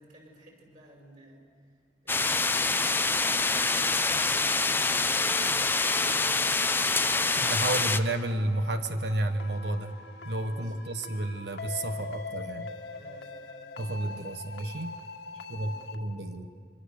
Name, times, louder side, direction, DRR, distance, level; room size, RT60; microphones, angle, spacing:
voice 1, 0.0-1.8 2.0-7.2 10.2-10.8 12.9-13.8 15.4-15.9, right 1 dB, 45° right, 0 dB, 6.3 m, -53 dB
sound 1, 2.1-8.0, left 3 dB, 10° left, 0.6 m, -26 dB
sound 2, 2.9-16.0, left 3 dB, 75° left, 1.9 m, -44 dB
voice 2, 7.4-9.9 10.2-12.7 13.8-15.0 15.5-16.5, right 1 dB, 75° right, 7 dB, 1.4 m, -31 dB
26.5 x 24.0 x 6.8 m, 2.1 s
head